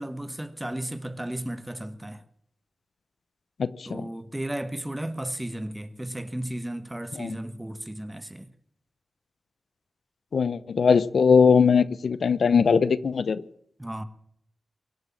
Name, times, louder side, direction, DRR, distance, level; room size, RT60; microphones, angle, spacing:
voice 1, 0.0-2.2 3.8-8.5 13.8-14.0, right 1 dB, 10° right, 1.3 m, -34 dB
voice 2, 10.3-13.4, left 6 dB, 75° left, 0.7 m, -20 dB
23.5 x 8.1 x 7.3 m
wide cardioid pair, 85°, 0 cm